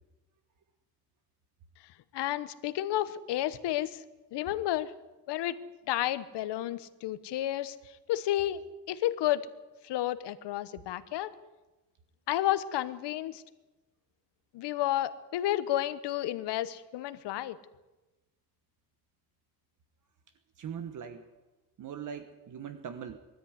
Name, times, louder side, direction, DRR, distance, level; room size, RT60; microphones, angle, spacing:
voice 1, 2.1-4.0 4.3-4.9 5.3-7.8 8.1-9.5 9.8-11.3 12.3-13.4 14.5-17.6, left 13 dB, 90° left, 13 dB, 1.2 m, -31 dB
voice 2, 20.6-21.2 21.8-23.2, right 8 dB, 50° right, 10 dB, 1.3 m, -40 dB
20.5 x 13.5 x 9.6 m, 1.1 s
cardioid pair, 165°, 40 cm